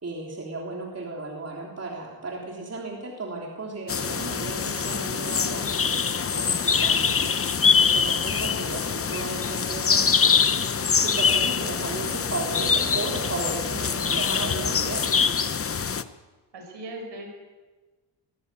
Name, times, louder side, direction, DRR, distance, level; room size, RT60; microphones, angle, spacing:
voice 1, 0.0-10.7 10.9-15.3, right 3 dB, 35° right, -1 dB, 3.5 m, -35 dB
sound 1, 3.9-16.0, left 6 dB, 30° left, 0.8 m, -24 dB
voice 2, 16.5-17.3, right 1 dB, 75° right, 2 dB, 6.9 m, -39 dB
21.5 x 15.0 x 8.9 m, 1.3 s
wide cardioid pair, 120°, 43 cm